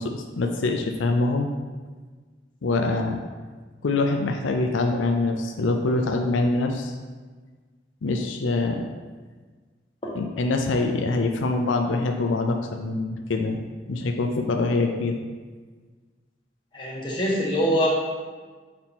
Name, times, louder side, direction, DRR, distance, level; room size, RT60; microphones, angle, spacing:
voice 1, 0.0-1.5 2.6-3.2 3.8-6.9 8.0-8.9 10.2-13.6 13.9-15.2, left 2 dB, 90° left, 4 dB, 0.5 m, -24 dB
voice 2, 16.7-17.9, equal, 25° left, -4 dB, 1.2 m, -24 dB
6.0 x 4.3 x 4.3 m, 1.4 s
head